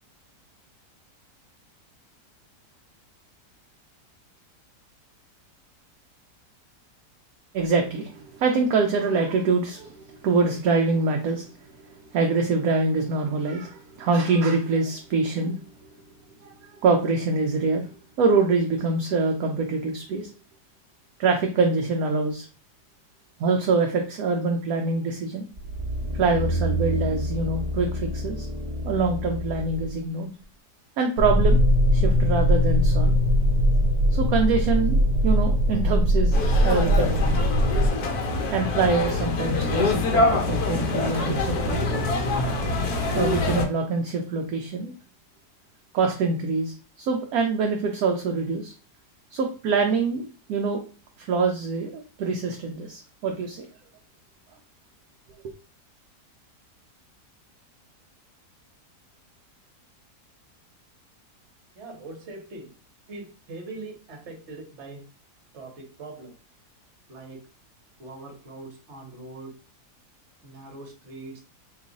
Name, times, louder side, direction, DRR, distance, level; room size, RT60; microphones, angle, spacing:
voice 1, 7.5-11.5 12.1-15.6 16.4-16.5 16.8-17.9 18.2-20.3 21.2-22.5 23.4-25.5 26.2-28.5 28.9-30.3 31.0-31.6 31.9-33.1 34.1-37.4 38.5-41.9 43.1-44.9 45.9-48.7 49.3-50.8 51.2-53.7, right 4 dB, 70° right, 2 dB, 1.0 m, -25 dB
sound 1, 25.6-29.9 30.4-30.5, equal, 35° right, 0.6 m, -29 dB
sound 2, 31.2-37.9, equal, 90° right, 1.3 m, -20 dB
sound 3, 36.3-43.7, left 2 dB, 70° left, 1.2 m, -25 dB
voice 2, 61.7-62.7 63.1-65.0 65.5-66.3 67.1-67.4 68.0-69.5 70.4-71.4, right 2 dB, 50° right, 2 dB, 1.2 m, -41 dB
3.0 x 2.3 x 3.9 m, 0.36 s
omnidirectional pair, 1.7 m